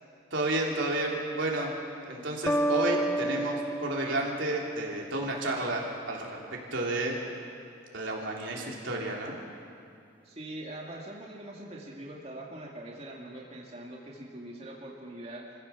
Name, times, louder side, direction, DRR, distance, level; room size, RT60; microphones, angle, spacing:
voice 1, 0.3-1.7 2.0-5.8 6.1-7.2 7.9-9.4, right 2 dB, 80° right, -2 dB, 3.4 m, -31 dB
sound 1, 2.5-5.3, right 1 dB, 10° left, 0.4 m, -31 dB
voice 2, 10.2-15.6, right 1 dB, 30° right, -2 dB, 2.2 m, -43 dB
25.5 x 15.5 x 7.1 m, 2.6 s
head